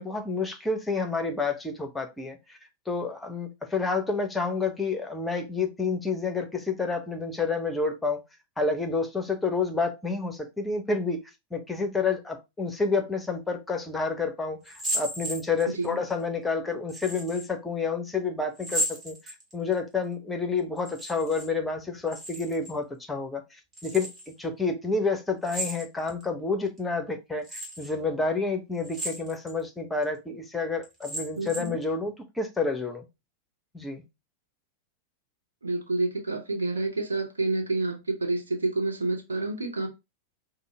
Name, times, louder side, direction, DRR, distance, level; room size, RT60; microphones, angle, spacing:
voice 1, 0.0-2.6 2.9-8.2 8.6-11.2 11.5-23.4 23.8-24.1 24.4-33.1 33.7-34.0, left 4 dB, 10° left, 0.8 m, -29 dB
sound 1, 14.6-15.9 16.9-17.5 18.6-19.7 20.8-21.5 21.8-22.7 23.7-24.3 25.4-26.2 26.8-26.9 27.4-27.9 28.8-29.6 30.0-30.1 30.8-31.8, right 1 dB, 20° right, 1.6 m, -34 dB
voice 2, 31.4-31.7 35.6-39.9, right 2 dB, 75° right, 0.9 m, -29 dB
5.3 x 2.1 x 3.3 m
figure-of-eight pair, 90°, 0 cm